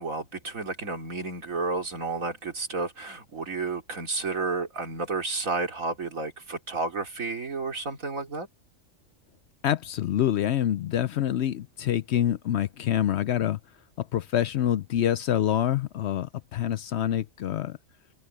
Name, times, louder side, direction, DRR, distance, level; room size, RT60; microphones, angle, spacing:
voice 1, 0.0-8.5, right 3 dB, 80° right, 3.5 m, -31 dB
voice 2, 9.6-13.6 14.0-17.8, left 11 dB, 65° left, 0.7 m, -26 dB
open air
omnidirectional pair, 1.4 m